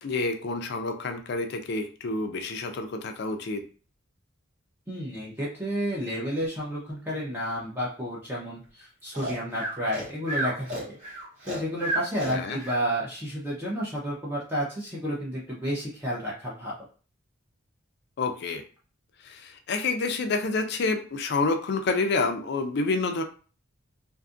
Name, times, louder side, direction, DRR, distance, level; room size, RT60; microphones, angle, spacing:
voice 1, 0.0-3.6 12.3-12.6 18.2-18.6 19.2-23.2, left 3 dB, 50° left, 6 dB, 0.4 m, -28 dB
voice 2, 4.9-11.0 11.4-16.7, equal, 10° right, -6 dB, 0.6 m, -31 dB
Breathing, 9.1-12.8, right 1 dB, 35° right, 0.9 m, -32 dB
2.5 x 2.4 x 2.4 m, 0.38 s
head